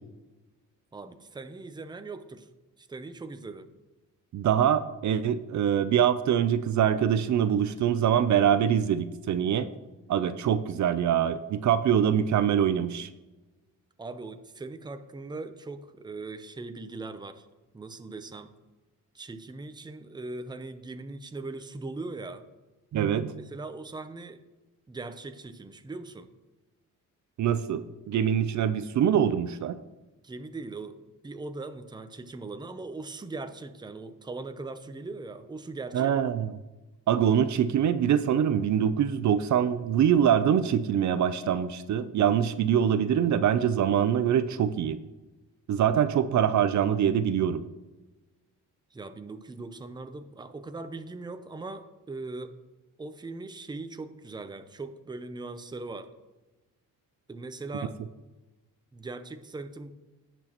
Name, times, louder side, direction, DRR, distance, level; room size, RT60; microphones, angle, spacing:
voice 1, 0.9-2.5 2.8-3.7 14.0-17.5 17.7-18.5 19.1-22.4 23.4-24.4 24.9-26.3 30.2-36.1 48.9-52.5 53.0-56.1 57.3-58.0 58.9-60.2, right 3 dB, 15° right, 9 dB, 0.6 m, -40 dB
voice 2, 4.3-9.7 10.1-13.1 22.9-23.3 27.4-29.8 35.9-36.5 37.1-45.0 45.7-47.6, right 9 dB, 60° right, 12 dB, 0.6 m, -24 dB
17.0 x 6.1 x 3.0 m, 1.1 s
cardioid pair, 115°, 33 cm